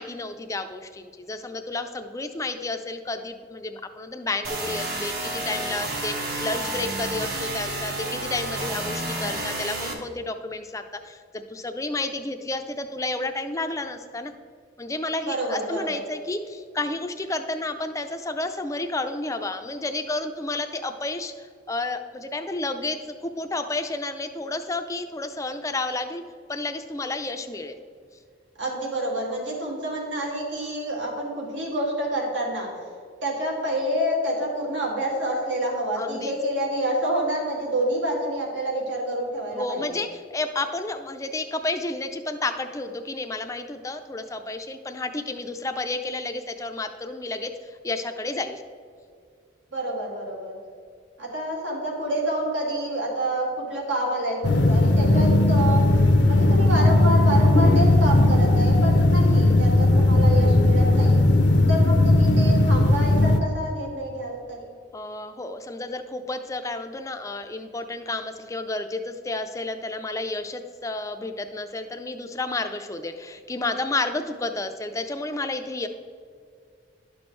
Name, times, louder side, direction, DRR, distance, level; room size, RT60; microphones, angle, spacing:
voice 1, 0.0-14.3 14.8-26.2 26.5-27.8 36.0-36.3 39.5-48.6 64.9-75.9, left 2 dB, 15° left, 7 dB, 0.4 m, -31 dB
sound 1, 4.4-9.9, right 2 dB, 55° right, 1.2 m, -30 dB
voice 2, 15.2-16.0 28.6-32.7 33.2-39.8 49.7-50.5 51.2-55.9 56.2-61.2 61.7-64.7, right 1 dB, 80° right, -2 dB, 2.1 m, -28 dB
sound 2, 54.4-63.4, left 2 dB, 65° left, 0.6 m, -17 dB
11.5 x 6.1 x 3.2 m, 2.2 s
head